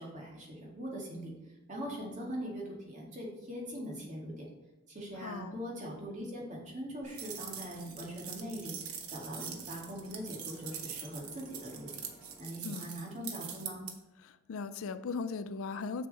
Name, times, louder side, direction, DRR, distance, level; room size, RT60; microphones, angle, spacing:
voice 1, 0.0-1.3 1.7-4.5 4.9-12.0 12.4-13.8, equal, 35° right, -2 dB, 2.1 m, -41 dB
voice 2, 5.2-5.6 12.6-12.8 14.2-16.1, left 4 dB, 70° left, 13 dB, 0.4 m, -38 dB
sound 1, 7.0-12.4, equal, 10° right, 1.2 m, -59 dB
sound 2, 7.1-13.9, right 7 dB, 80° right, 1.0 m, -43 dB
6.6 x 6.6 x 4.1 m, 1.0 s
head